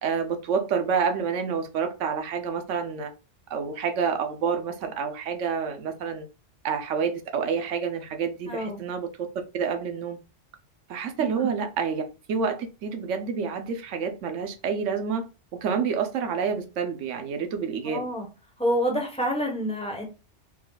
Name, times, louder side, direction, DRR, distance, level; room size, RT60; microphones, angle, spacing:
voice 1, 0.0-3.1 3.5-6.3 6.6-9.3 9.5-10.2 10.9-15.2 15.5-18.0, right 6 dB, 85° right, 1.0 m, -28 dB
voice 2, 8.5-8.8 11.2-11.5 17.8-18.3 18.6-20.0, equal, 5° left, 1.2 m, -28 dB
4.4 x 2.3 x 3.9 m
omnidirectional pair, 1.2 m